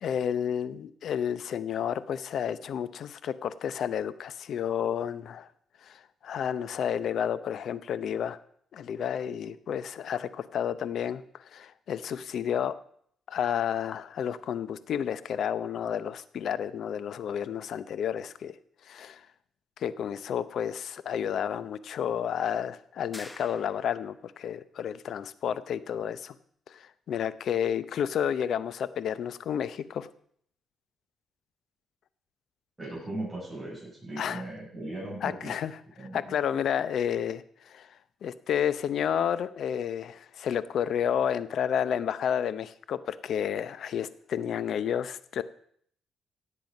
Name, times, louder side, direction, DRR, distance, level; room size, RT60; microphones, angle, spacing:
voice 1, 0.0-5.5 5.8-8.4 8.7-12.7 13.3-18.5 18.8-19.3 19.8-26.3 26.7-30.1 34.2-34.4 35.2-37.9 38.2-45.4, left 8 dB, 65° left, 15 dB, 0.7 m, -31 dB
sound 1, 23.1-24.2, left 1 dB, 15° left, 1.0 m, -47 dB
voice 2, 32.8-35.5 36.0-36.3, right 1 dB, 10° right, -6 dB, 7.4 m, -38 dB
17.0 x 7.6 x 5.3 m, 0.64 s
cardioid pair, 95°, 0 cm